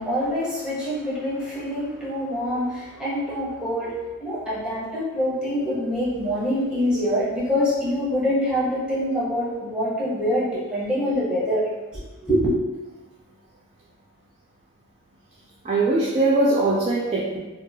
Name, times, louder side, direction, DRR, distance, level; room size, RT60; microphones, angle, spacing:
voice 1, 0.0-11.7 12.2-12.5, equal, 5° right, -8 dB, 0.8 m, -25 dB
voice 2, 15.6-17.4, right 2 dB, 30° right, -6 dB, 0.3 m, -21 dB
2.6 x 2.2 x 2.6 m, 1.2 s
head